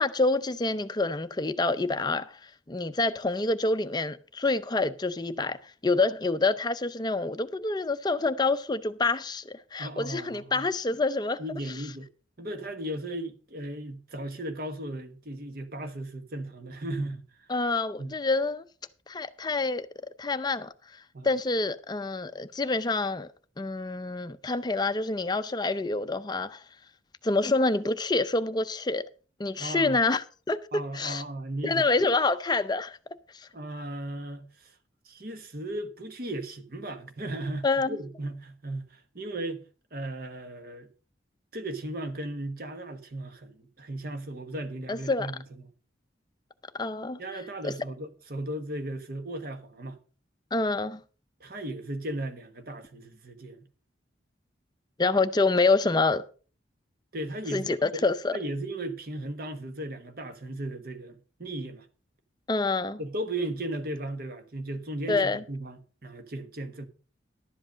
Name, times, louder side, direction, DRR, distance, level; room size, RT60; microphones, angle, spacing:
voice 1, 0.0-11.4 17.5-18.6 19.1-19.9 20.2-23.3 23.6-26.6 27.2-29.0 29.4-30.6 30.9-31.2 31.6-33.0 33.3-33.5 37.6-38.0 44.9-45.3 46.7-47.2 47.6-47.7 50.5-51.0 55.0-56.2 57.5-58.4 62.5-63.0 65.1-65.4, left 3 dB, 20° left, 0.5 m, -27 dB
voice 2, 9.8-11.0 11.4-12.1 12.4-17.5 18.0-18.1 21.1-21.3 29.6-30.0 30.7-31.9 33.5-34.7 35.0-39.6 39.9-40.9 41.5-45.4 47.2-50.0 51.4-53.7 57.1-58.1 58.3-61.9 63.0-66.9, right 1 dB, 50° right, 1.2 m, -36 dB
11.5 x 7.8 x 5.1 m
head